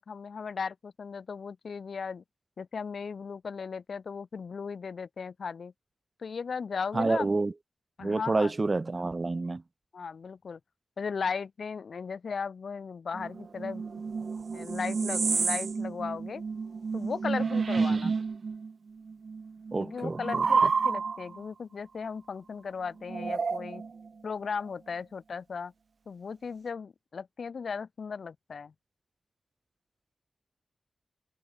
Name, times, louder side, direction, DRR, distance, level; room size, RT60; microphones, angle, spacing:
voice 1, 0.0-2.2 2.6-5.7 6.2-7.3 8.0-8.5 9.9-10.6 11.0-13.8 14.5-16.4 16.9-18.1 19.8-23.8 24.2-25.7 26.0-28.7, left 5 dB, 75° left, 6.7 m, -36 dB
voice 2, 6.9-7.5 8.0-9.6 17.8-18.1 19.7-20.5, right 3 dB, 35° right, 3.7 m, -28 dB
sound 1, 13.1-18.7 19.0-21.4 23.1-24.1, right 5 dB, 65° right, 5.5 m, -30 dB
wide cardioid pair, 75°, 0 cm